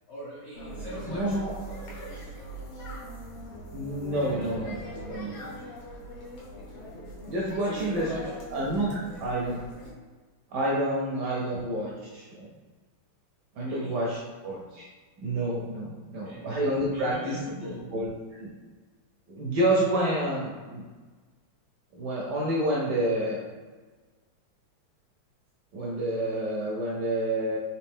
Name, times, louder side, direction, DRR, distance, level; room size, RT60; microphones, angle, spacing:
voice 1, 0.1-2.4 4.2-5.7 7.6-8.3 11.1-11.8 13.6-14.0 16.2-16.6 16.9-17.9, equal, 65° left, -9 dB, 0.6 m, -42 dB
sound 1, 0.5-9.9, equal, 85° left, 2.0 m, -41 dB
voice 2, 1.1-1.5 3.7-4.8 5.1-5.3 7.3-8.1 8.5-9.6 10.5-12.5 13.6-14.8 15.2-17.4 17.9-18.5 19.3-20.8 21.9-23.4 25.7-27.6, right 1 dB, 75° right, -4 dB, 1.0 m, -28 dB
4.3 x 2.7 x 3.5 m, 1.4 s
omnidirectional pair, 2.4 m